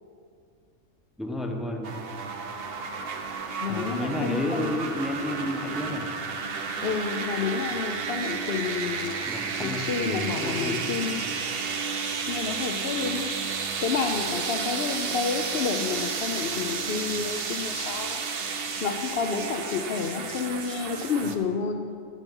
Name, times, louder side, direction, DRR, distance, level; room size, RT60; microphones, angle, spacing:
voice 1, 1.2-2.1 3.7-6.1 6.7-7.0 9.3-10.9 11.2-11.3 21.2-21.4, left 1 dB, ahead, 2 dB, 0.8 m, -32 dB
sound 1, 1.8-21.4, right 5 dB, 55° right, 1.0 m, -32 dB
voice 2, 3.6-4.7 6.8-9.2 9.6-11.3 12.3-13.3 13.8-18.2 18.8-21.8, left 5 dB, 60° left, 3 dB, 0.8 m, -30 dB
14.5 x 7.0 x 5.4 m, 2.2 s
omnidirectional pair, 1.3 m